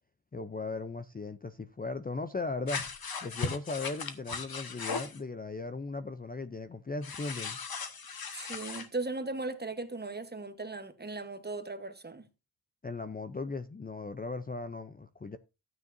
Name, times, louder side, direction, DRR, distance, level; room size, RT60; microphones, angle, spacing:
voice 1, 0.3-2.8 3.2-7.6 12.8-15.4, left 3 dB, 25° left, 0.5 m, -37 dB
sound 1, 2.7-5.2 7.0-8.9, left 5 dB, 65° left, 1.3 m, -37 dB
voice 2, 8.3-12.3, right 3 dB, 25° right, 1.1 m, -37 dB
13.5 x 9.3 x 2.6 m
wide cardioid pair, 105°, 40 cm